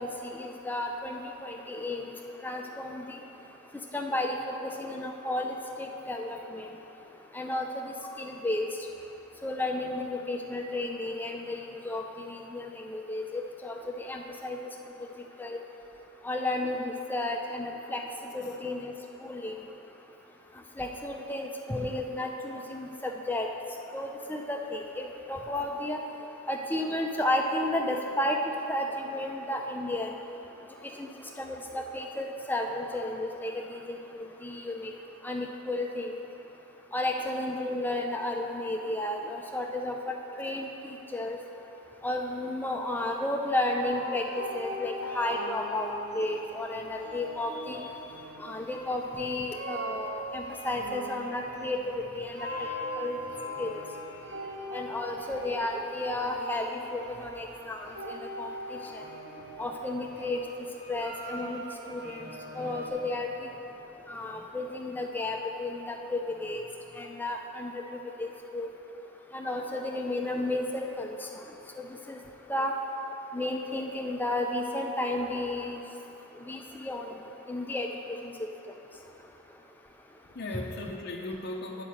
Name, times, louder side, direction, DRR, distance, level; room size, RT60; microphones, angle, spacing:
voice 1, 0.0-2.1 2.4-3.2 3.9-6.7 7.3-8.7 9.4-14.6 15.4-15.6 16.2-18.0 18.3-18.9 19.2-19.6 20.8-23.5 23.9-26.0 26.5-28.4 28.7-30.1 31.0-31.1 31.4-34.9 35.2-36.2 36.9-41.4 42.0-44.2 44.5-47.8 48.4-52.4 53.0-53.2 53.6-53.8 54.7-59.0 59.6-60.4 60.9-61.6 61.9-62.3 62.5-63.3 64.1-66.6 67.0-67.8 68.2-68.7 69.3-71.2 71.8-72.2 72.5-72.7 73.3-75.8 76.5-77.1 77.5-77.9, left 1 dB, 10° left, 2 dB, 0.5 m, -33 dB
sound 1, 43.8-62.9, equal, 50° right, 1.0 m, -40 dB
voice 2, 58.4-59.2 80.3-81.8, left 2 dB, 50° left, -1 dB, 0.6 m, -39 dB
8.3 x 5.1 x 7.3 m, 2.9 s
head